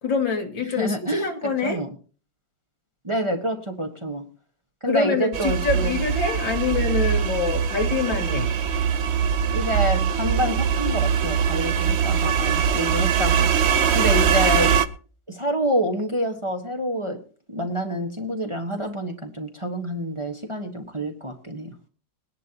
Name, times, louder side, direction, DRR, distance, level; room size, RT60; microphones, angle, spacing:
voice 1, 0.0-1.8 4.8-8.5 14.2-14.5, left 4 dB, 85° left, 5 dB, 2.5 m, -25 dB
voice 2, 0.8-1.2 1.6-1.9 3.0-4.2 4.8-5.9 9.5-13.5 13.9-14.7 15.3-17.2 17.5-21.7, equal, 20° right, 3 dB, 1.2 m, -27 dB
sound 1, 5.3-14.9, right 7 dB, 65° right, 0.6 m, -22 dB
22.0 x 10.5 x 2.9 m, 0.39 s
omnidirectional pair, 2.0 m